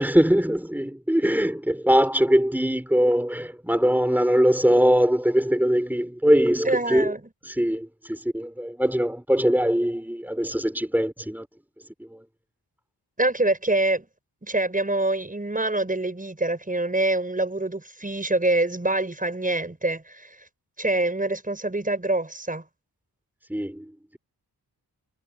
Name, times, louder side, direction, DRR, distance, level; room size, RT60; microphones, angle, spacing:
voice 1, 0.0-7.1 7.4-11.5 12.0-12.2 23.5-24.2, equal, 5° right, 4.2 m, -22 dB
voice 2, 6.6-7.2 13.2-14.1 14.4-20.4 20.8-22.6, right 2 dB, 20° right, 6.7 m, -25 dB
wide cardioid pair, 110°, 39 cm